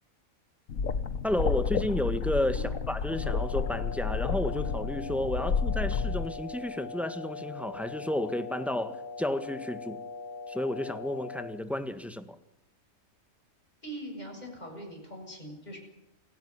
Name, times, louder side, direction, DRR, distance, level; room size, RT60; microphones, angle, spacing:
sound 1, 0.7-6.3, left 5 dB, 90° left, 1.7 m, -30 dB
voice 1, 1.2-10.0 10.5-12.4, left 1 dB, ahead, 9 dB, 1.7 m, -32 dB
sound 2, 3.1-11.4, left 4 dB, 65° left, 6.2 m, -41 dB
voice 2, 13.8-15.8, right 1 dB, 30° left, 2 dB, 7.6 m, -42 dB
28.5 x 17.5 x 9.8 m, 0.82 s
omnidirectional pair, 1.4 m